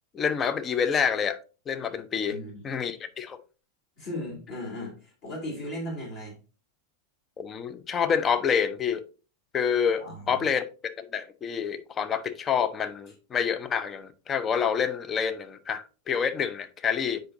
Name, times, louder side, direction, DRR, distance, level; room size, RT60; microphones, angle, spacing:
voice 1, 0.1-1.4 1.7-2.4 2.6-3.4 7.4-9.0 9.5-17.2, left 7 dB, 25° left, 0.7 m, -28 dB
voice 2, 2.3-2.6 4.0-6.4 10.0-10.4, left 1 dB, 45° left, 2.8 m, -36 dB
7.9 x 5.2 x 2.6 m
figure-of-eight pair, 90°, 0 cm